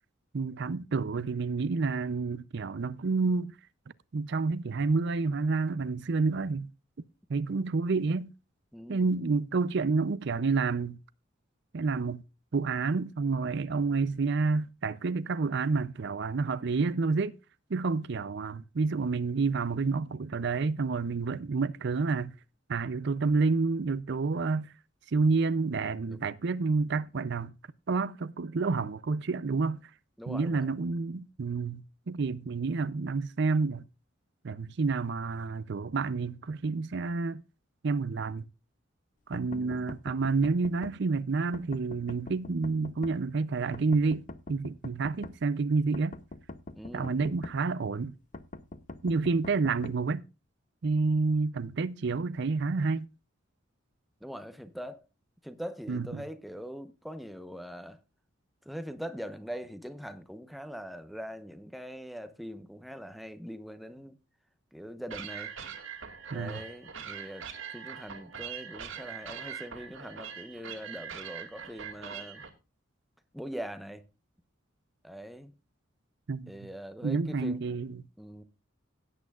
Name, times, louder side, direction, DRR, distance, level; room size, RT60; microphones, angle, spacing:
voice 1, 0.3-3.5 4.1-6.7 7.3-8.3 8.9-11.0 11.7-12.2 12.5-17.3 17.7-22.3 22.7-24.7 25.1-27.5 27.9-29.8 30.3-33.9 34.4-37.4 37.8-38.5 39.3-46.2 46.9-48.1 49.0-50.2 50.8-53.1 55.9-56.2 66.3-66.6 76.3-76.5 77.0-78.0, right 4 dB, 60° right, 0.5 m, -29 dB
voice 2, 8.7-9.1 26.1-26.2 30.2-30.7 39.5-39.9 46.7-47.3 54.2-55.0 55.4-58.0 58.7-64.2 64.7-65.5 66.3-67.5 67.7-72.4 73.3-74.0 75.0-75.5 76.5-77.6 78.2-78.4, equal, ahead, 0.9 m, -42 dB
sound 1, 39.3-41.0 41.5-43.2 43.7-45.4 45.9-47.6 48.3-50.0, left 2 dB, 40° left, 0.7 m, -43 dB
sound 2, 65.1-72.5, right 7 dB, 75° right, 2.3 m, -42 dB
17.5 x 8.7 x 2.4 m
head